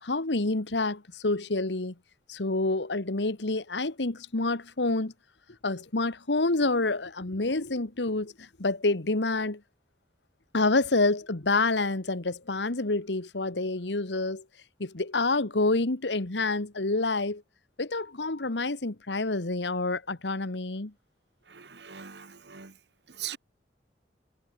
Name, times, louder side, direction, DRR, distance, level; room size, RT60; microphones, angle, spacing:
voice 1, 0.0-1.9 2.3-5.1 5.6-9.6 10.5-14.4 14.8-17.4 17.8-20.9, left 2 dB, 85° left, 1.6 m, -28 dB
voice 2, 21.4-22.8 23.1-23.4, right 10 dB, 70° right, 1.8 m, -41 dB
head